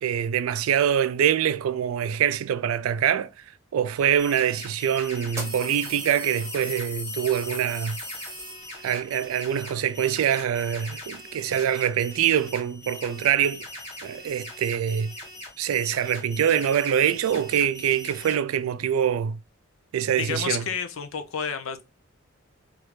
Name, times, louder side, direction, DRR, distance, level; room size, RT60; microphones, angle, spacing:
voice 1, 0.0-3.3 3.7-8.0 8.8-13.7 14.0-15.1 15.6-19.4 19.9-20.6, right 9 dB, 90° right, 0.3 m, -24 dB
sound 1, 4.0-18.4, left 1 dB, 30° left, 1.6 m, -42 dB
sound 2, 4.2-4.3 5.3-9.1, equal, 15° right, 0.9 m, -37 dB
voice 2, 20.2-21.8, left 6 dB, 70° left, 0.5 m, -30 dB
3.2 x 2.5 x 3.1 m
head